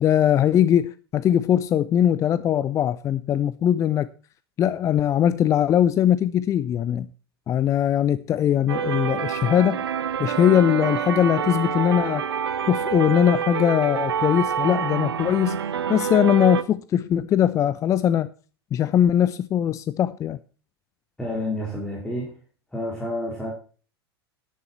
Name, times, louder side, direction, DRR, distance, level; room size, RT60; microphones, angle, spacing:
voice 1, 0.0-4.1 4.6-7.1 7.5-9.8 10.2-12.2 12.7-15.6 15.9-18.3 18.7-20.4, left 10 dB, 25° left, 0.5 m, -21 dB
sound 1, 8.7-16.6, right 8 dB, 70° right, 0.8 m, -27 dB
voice 2, 21.2-22.3 22.7-23.5, left 1 dB, 5° left, 4.1 m, -29 dB
10.5 x 10.0 x 4.3 m
figure-of-eight pair, 90°, 13 cm